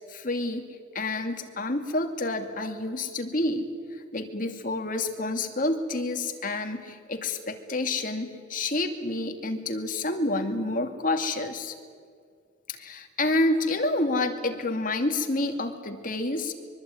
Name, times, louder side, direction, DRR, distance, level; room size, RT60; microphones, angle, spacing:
voice 1, 0.1-0.7 0.9-3.7 4.1-11.7 12.7-16.5, left 2 dB, 45° left, 6 dB, 2.5 m, -28 dB
24.0 x 23.5 x 9.5 m, 2.1 s
head